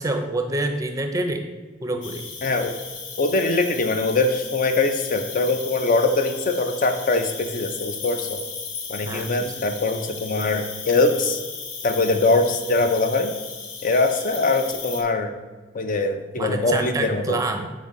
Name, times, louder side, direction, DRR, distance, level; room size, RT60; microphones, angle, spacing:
voice 1, 0.0-1.5 1.8-2.2 9.1-9.5 16.4-17.7, right 2 dB, 20° right, 5 dB, 0.6 m, -27 dB
Cricket, 2.0-15.0, left 5 dB, 80° left, 0.9 m, -36 dB
voice 2, 2.4-2.7 3.2-8.4 8.9-11.4 11.8-13.3 13.8-15.3 15.7-17.4, left 3 dB, 45° left, 7 dB, 0.6 m, -22 dB
5.1 x 3.8 x 5.5 m, 1.3 s
head